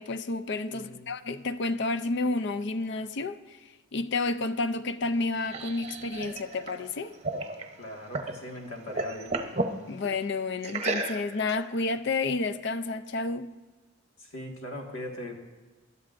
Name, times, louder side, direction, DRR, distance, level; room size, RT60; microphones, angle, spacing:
voice 1, 0.0-3.6 3.9-7.2 9.9-13.5, left 3 dB, 55° left, 0.5 m, -30 dB
voice 2, 0.7-1.1 7.8-9.6 14.2-15.3, left 1 dB, 75° left, 1.9 m, -40 dB
sound 1, 5.0-8.4 8.7-9.8 10.6-11.5, right 2 dB, 30° right, 0.8 m, -33 dB
20.5 x 12.0 x 2.6 m
head